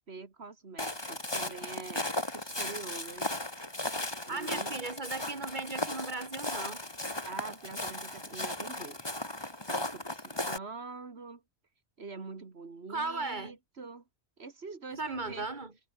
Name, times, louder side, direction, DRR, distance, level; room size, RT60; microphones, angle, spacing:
voice 1, 0.0-2.1 2.3-3.3 4.3-4.8 7.3-9.0 9.7-11.4 12.0-14.0 14.4-15.5, right 4 dB, 85° right, 2.4 m, -45 dB
Walk footsteps, 0.8-10.6, left 1 dB, 25° left, 2.8 m, -36 dB
voice 2, 4.3-6.8 12.9-13.5 14.9-15.7, right 3 dB, 50° right, 2.8 m, -36 dB
omnidirectional pair, 1.1 m